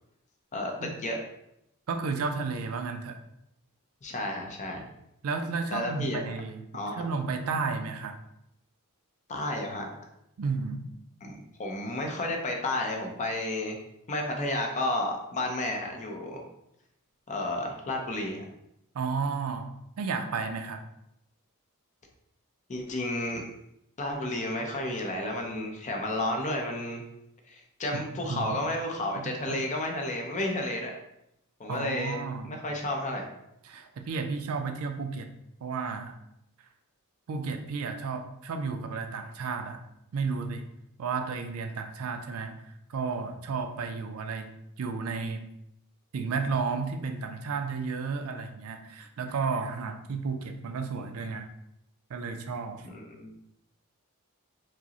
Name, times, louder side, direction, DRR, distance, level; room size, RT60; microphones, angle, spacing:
voice 1, 0.5-1.2 4.0-4.9 5.7-6.2 6.7-7.0 9.3-9.9 11.2-13.8 14.1-16.4 17.3-18.4 22.7-23.4 24.0-27.0 27.5-31.0 31.6-32.2 32.4-33.3 52.9-53.3, left 1 dB, 35° left, 2 dB, 0.5 m, -32 dB
voice 2, 1.9-3.2 5.2-6.7 7.0-8.2 10.4-10.9 18.9-20.8 27.9-28.0 28.3-28.6 29.2-29.6 31.7-32.6 33.6-35.3 35.6-36.2 37.3-39.9 40.1-40.7 41.0-42.6 42.9-44.5 44.8-45.5 46.1-51.5 52.1-52.9, right 4 dB, 70° right, 6 dB, 0.4 m, -32 dB
4.7 x 2.0 x 2.8 m, 0.80 s
head